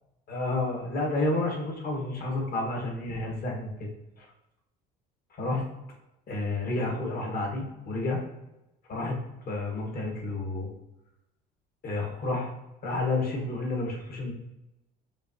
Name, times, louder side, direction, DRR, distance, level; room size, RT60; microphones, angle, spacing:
voice 1, 0.3-3.9 4.2-4.3 5.4-5.6 6.3-8.2 8.9-9.2 9.5-10.7 11.8-12.5 12.8-14.3, left 2 dB, 45° left, -1 dB, 1.6 m, -30 dB
6.9 x 2.6 x 2.9 m, 0.91 s
supercardioid pair, 95°, 21 cm